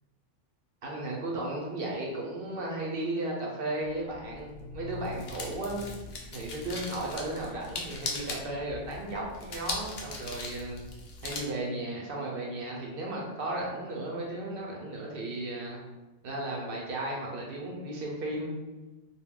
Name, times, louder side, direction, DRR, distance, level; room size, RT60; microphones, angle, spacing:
voice 1, 0.8-5.8 6.3-10.8 11.2-15.8 16.2-18.5, right 2 dB, 60° right, -2 dB, 0.7 m, -35 dB
sound 1, 3.8-11.4, left 3 dB, 60° left, 0.5 m, -40 dB
2.2 x 2.1 x 3.5 m, 1.1 s
omnidirectional pair, 1.2 m